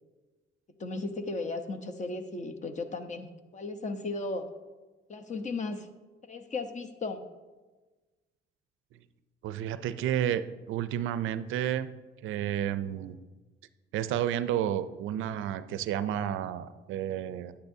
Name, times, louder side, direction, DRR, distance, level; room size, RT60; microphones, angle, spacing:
voice 1, 0.8-4.5 5.1-5.9 6.3-7.2, left 3 dB, 35° left, 7 dB, 0.8 m, -35 dB
voice 2, 9.4-10.4 10.7-11.9 12.2-13.2 13.9-17.5, right 10 dB, 85° right, 13 dB, 0.4 m, -31 dB
9.9 x 9.2 x 2.7 m, 1.2 s
cardioid pair, 90°, 20 cm